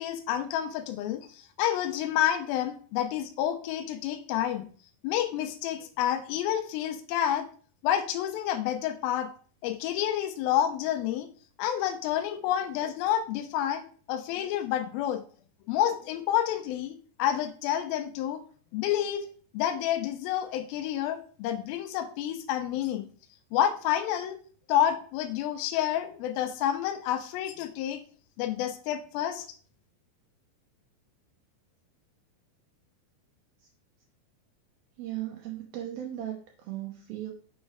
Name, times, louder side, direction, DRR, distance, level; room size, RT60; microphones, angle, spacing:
voice 1, 0.0-4.7 5.0-7.5 7.8-9.3 9.6-11.3 11.6-13.8 14.1-15.2 15.7-18.4 18.7-19.3 19.5-23.1 23.5-24.4 24.7-28.0 28.4-29.5, left 11 dB, 90° left, 7 dB, 2.1 m, -29 dB
voice 2, 35.0-37.3, right 12 dB, 85° right, 1 dB, 2.1 m, -37 dB
6.6 x 3.2 x 4.7 m, 0.43 s
omnidirectional pair, 5.1 m